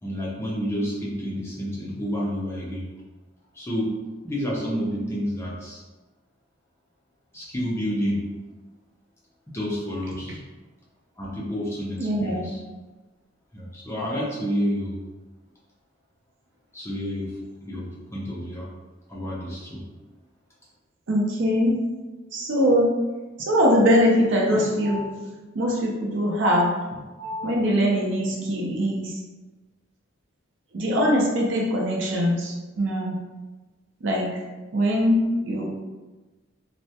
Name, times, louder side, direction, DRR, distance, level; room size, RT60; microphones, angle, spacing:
voice 1, 0.0-2.9 3.5-5.8 7.3-8.3 9.5-10.4 11.2-12.6 13.5-15.0 16.7-18.7 19.1-19.8, equal, 15° left, -5 dB, 0.4 m, -29 dB
voice 2, 12.0-12.5 21.1-21.8 22.3-22.9 23.4-25.1 25.5-26.7 27.2-29.2 30.7-33.2 34.0-34.4 34.7-35.7, equal, 65° right, -2 dB, 0.5 m, -22 dB
2.2 x 2.1 x 2.7 m, 1.2 s
head